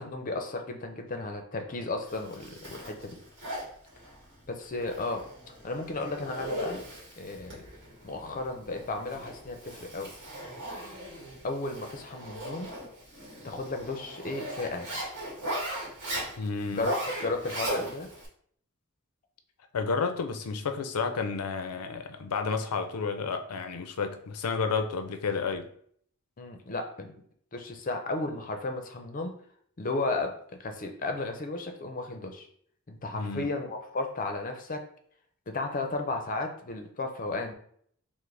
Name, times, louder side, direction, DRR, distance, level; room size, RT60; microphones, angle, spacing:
voice 1, 0.0-3.2 4.5-5.2 5.6-6.8 7.2-7.6 8.0-10.1 11.4-12.7 13.4-14.9 16.7-17.0 17.2-18.1 26.4-27.2 27.5-29.3 29.8-32.5 32.9-34.8 35.5-37.5, left 2 dB, 35° left, 5 dB, 0.5 m, -34 dB
Zipper (clothing), 2.1-18.3, right 1 dB, 55° right, 1.6 m, -39 dB
voice 2, 16.4-16.9 19.7-25.7 33.1-33.5, left 5 dB, 90° left, 7 dB, 0.5 m, -31 dB
6.0 x 2.1 x 3.3 m, 0.62 s
head